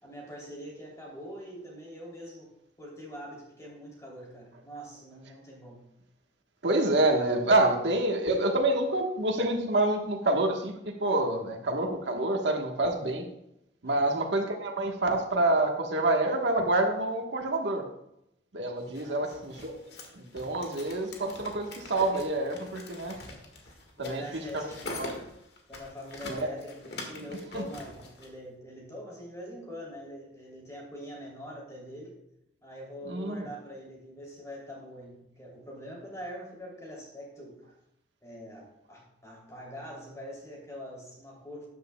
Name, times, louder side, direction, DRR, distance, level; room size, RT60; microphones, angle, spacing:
voice 1, 0.0-5.9 13.8-14.1 19.0-19.5 23.1-25.3 25.7-32.2 32.6-37.8 38.2-41.7, equal, 15° left, -2 dB, 3.1 m, -44 dB
voice 2, 6.6-13.2 13.8-17.9 18.5-19.8 20.1-23.2 24.0-24.2 24.5-24.7 25.0-25.1 26.2-26.5 27.5-27.6 33.0-33.5, right 2 dB, 80° right, 2 dB, 1.3 m, -27 dB
sound 1, 18.9-28.3, left 2 dB, 65° left, 1.7 m, -44 dB
13.0 x 9.4 x 2.3 m, 0.82 s
head